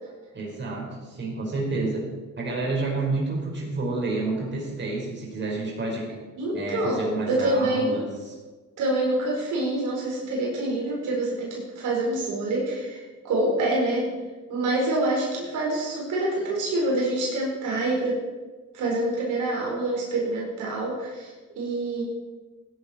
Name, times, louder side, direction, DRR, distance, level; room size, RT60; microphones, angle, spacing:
voice 1, 0.3-2.0 2.3-6.1 6.5-8.3, right 3 dB, 35° right, -2 dB, 4.9 m, -29 dB
voice 2, 6.4-8.0 8.8-14.1 14.5-18.2 18.7-22.0, right 1 dB, 85° right, -3 dB, 4.7 m, -26 dB
16.0 x 10.5 x 4.4 m, 1.3 s
cardioid pair, 90°, 30 cm